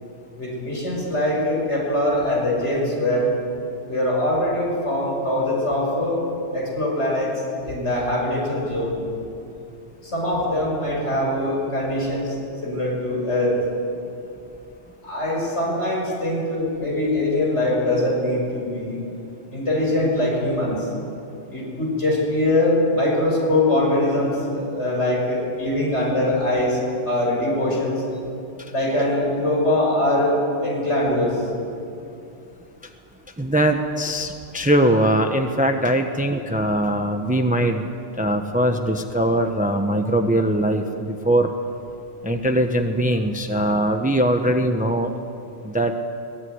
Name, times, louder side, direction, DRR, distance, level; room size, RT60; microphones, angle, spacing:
voice 1, 0.4-3.3 3.9-6.2 6.5-7.3 7.6-9.0 10.0-12.4 12.6-13.5 15.0-19.0 19.5-20.9 21.5-26.8 27.1-28.0 28.7-30.4 30.6-31.4, left 1 dB, 80° left, -3 dB, 6.4 m, -22 dB
voice 2, 33.4-37.9 38.2-41.5 42.2-45.1 45.6-46.0, right 1 dB, 10° right, 5 dB, 1.0 m, -21 dB
24.0 x 19.0 x 9.7 m, 2.6 s
omnidirectional pair, 1.2 m